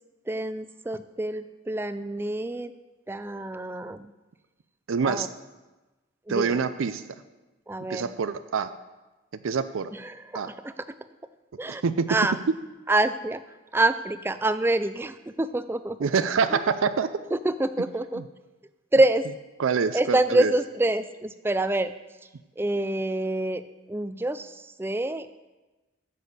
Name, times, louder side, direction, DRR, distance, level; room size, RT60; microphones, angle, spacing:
voice 1, 0.3-2.7 3.1-4.1 5.0-5.3 6.3-6.6 7.7-8.1 9.9-11.0 11.6-11.8 12.1-12.4 12.9-13.4 13.7-16.1 16.5-16.6 17.3-18.2 18.9-19.2 19.9-21.9 22.6-23.6 23.9-25.3, right 2 dB, 10° right, 12 dB, 0.3 m, -26 dB
voice 2, 4.9-5.3 6.3-7.0 7.9-8.7 9.4-9.9 10.3-10.5 11.8-12.2 16.0-17.1 18.2-18.3 19.6-20.5, right 5 dB, 90° right, 11 dB, 0.5 m, -25 dB
9.7 x 6.9 x 6.5 m, 1.1 s
head